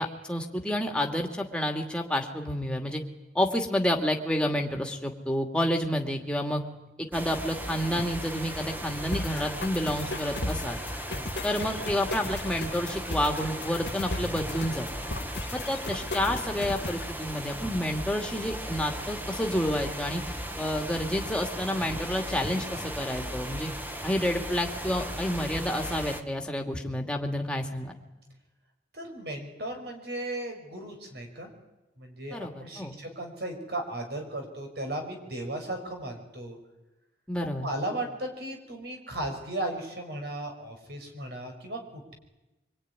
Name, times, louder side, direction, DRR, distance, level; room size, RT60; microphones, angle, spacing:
voice 1, 0.0-3.0 3.3-6.6 7.0-10.8 11.4-14.9 15.5-20.2 20.6-23.7 24.0-27.9 32.3-33.0 37.3-37.7, left 1 dB, 5° left, 2 dB, 2.5 m, -29 dB
sound 1, 7.1-26.2, equal, 10° right, 1.6 m, -37 dB
sound 2, 9.1-17.1, left 2 dB, 75° left, 2.0 m, -37 dB
voice 2, 28.9-31.5 32.0-36.6 37.6-42.1, right 1 dB, 65° right, 4 dB, 6.0 m, -36 dB
24.5 x 24.5 x 9.8 m, 1.0 s
head